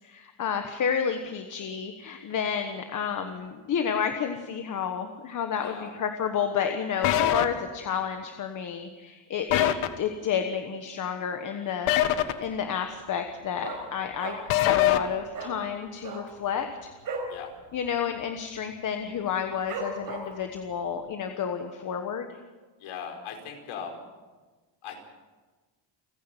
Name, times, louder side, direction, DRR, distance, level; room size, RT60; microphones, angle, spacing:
voice 1, 0.0-9.7 10.0-16.9 17.7-22.4, left 7 dB, 40° left, 6 dB, 1.3 m, -31 dB
voice 2, 5.6-6.0 7.0-7.1 17.3-17.5 22.8-24.0 24.8-25.0, left 7 dB, 70° left, 3 dB, 4.9 m, -39 dB
sound 1, 7.0-7.4 9.5-9.9 11.9-12.3 14.5-15.0, left 13 dB, 90° left, 1.5 m, -22 dB
Dog, 12.1-12.6 12.8-12.9 13.2-14.6 14.9-15.0 15.3-15.6 15.9-17.4 17.7-17.9 18.1-18.5 19.0-19.1 19.7-20.5 20.9-21.0, right 4 dB, 40° right, 4.9 m, -36 dB
29.5 x 10.5 x 9.0 m, 1.3 s
cardioid pair, 175°, 50 cm